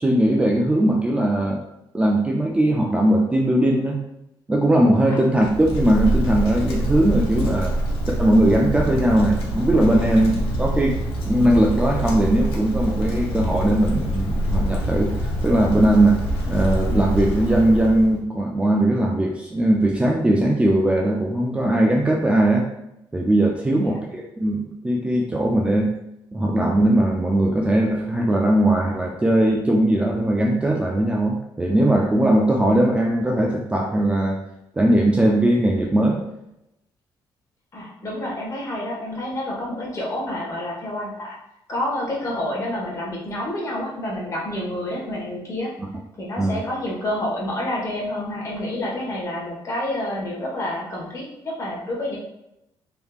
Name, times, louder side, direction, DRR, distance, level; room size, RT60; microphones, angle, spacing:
voice 1, 0.0-1.6 1.9-4.0 4.5-7.8 8.2-10.3 10.6-11.0 11.2-16.2 16.5-22.7 23.1-26.0 26.3-34.4 34.8-36.2 45.8-45.9 46.4-46.6, right 1 dB, 15° right, -1 dB, 0.4 m, -19 dB
Wind, 5.4-18.2, equal, 90° left, 0.8 m, -25 dB
voice 2, 37.7-41.3 41.7-45.7 46.2-52.2, left 1 dB, 35° left, -4 dB, 1.3 m, -28 dB
3.4 x 3.0 x 2.4 m, 0.84 s
cardioid pair, 130°, 9 cm